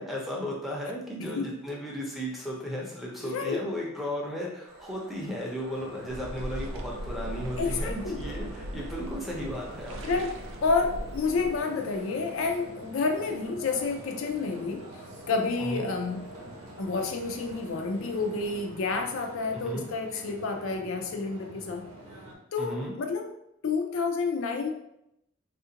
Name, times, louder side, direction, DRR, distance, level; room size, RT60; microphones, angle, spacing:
voice 1, 0.0-10.2 15.6-15.9 19.5-19.8 22.6-22.9, equal, ahead, -4 dB, 0.6 m, -35 dB
voice 2, 1.2-1.5 3.2-3.6 7.6-8.2 10.0-14.9 15.3-16.3 16.8-21.9 22.5-23.3 23.6-24.7, left 4 dB, 65° left, 4 dB, 0.4 m, -29 dB
sound 1, 4.7-18.7, equal, 45° right, 0.8 m, -49 dB
sound 2, 5.7-22.3, right 1 dB, 80° right, 0.8 m, -47 dB
sound 3, 6.1-11.6, right 1 dB, 65° right, 0.4 m, -38 dB
3.4 x 2.4 x 2.8 m, 0.80 s
head